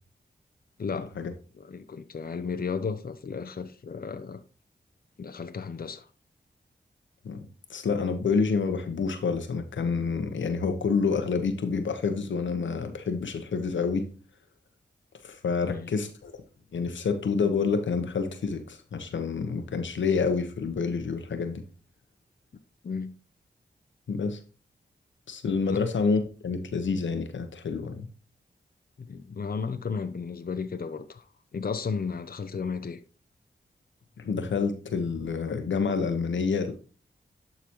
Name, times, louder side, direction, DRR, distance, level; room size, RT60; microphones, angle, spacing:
voice 1, 0.8-1.1 1.5-4.4 5.2-6.1 15.6-15.9 22.8-23.1 25.7-25.8 29.0-31.2 31.5-33.0, left 5 dB, 50° left, 0.7 m, -34 dB
voice 2, 7.2-14.1 15.2-16.3 16.7-21.6 24.1-24.4 25.3-28.1 34.2-36.7, left 5 dB, 85° left, 1.0 m, -28 dB
11.5 x 4.0 x 3.0 m
cardioid pair, 45°, 19 cm